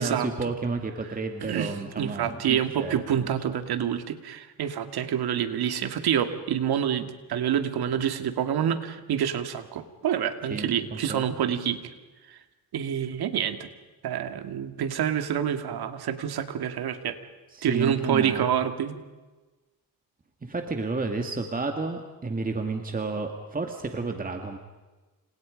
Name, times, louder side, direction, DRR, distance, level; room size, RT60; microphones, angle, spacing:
voice 1, 0.0-3.3 10.5-11.2 17.5-18.5 20.4-24.6, right 3 dB, 20° right, 4 dB, 2.3 m, -31 dB
voice 2, 1.4-11.9 12.3-12.4 12.7-13.7 14.0-17.2 17.6-19.0, right 9 dB, 75° right, 9 dB, 2.3 m, -27 dB
29.5 x 27.0 x 5.3 m, 1.2 s
cardioid pair, 110°, 38 cm